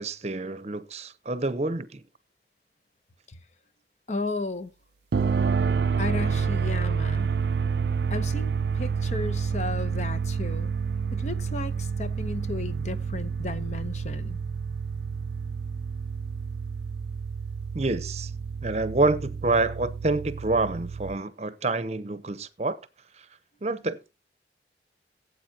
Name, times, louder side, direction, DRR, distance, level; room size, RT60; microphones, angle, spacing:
voice 1, 0.0-2.0 17.7-18.3 18.6-22.8 23.2-23.3 23.6-24.1, right 2 dB, 40° right, 0.8 m, -27 dB
voice 2, 4.1-4.7 6.0-7.3 8.1-10.7 11.1-14.4, left 2 dB, 40° left, 0.8 m, -34 dB
sound 1, 5.1-21.2, right 5 dB, 70° right, 0.5 m, -29 dB
16.5 x 8.3 x 2.8 m
head